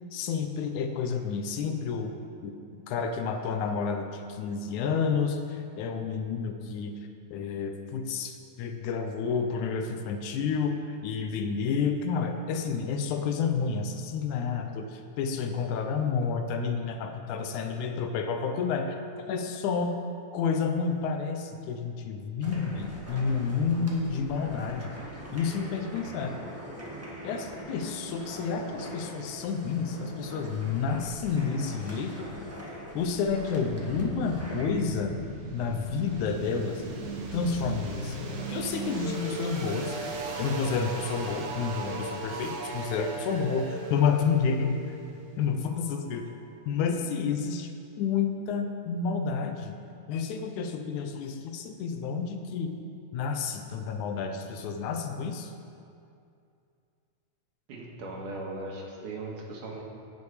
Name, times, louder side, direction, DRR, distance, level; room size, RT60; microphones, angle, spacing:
voice 1, 0.1-2.1 2.4-2.5 2.9-6.9 7.3-19.0 19.3-19.9 20.3-24.9 25.3-26.4 27.2-32.3 33.0-35.2 35.5-36.8 37.3-40.0 40.4-45.0 45.4-46.3 46.7-47.7 48.0-49.7 50.1-52.8 53.1-55.5, left 5 dB, 75° left, 6 dB, 2.1 m, -30 dB
sound 1, 22.4-34.7, equal, 15° right, 0.6 m, -42 dB
sound 2, 33.6-46.4, right 2 dB, 65° right, 1.0 m, -37 dB
voice 2, 57.7-59.8, right 2 dB, 85° right, -2 dB, 3.2 m, -38 dB
16.5 x 6.5 x 4.9 m, 2.5 s
omnidirectional pair, 3.6 m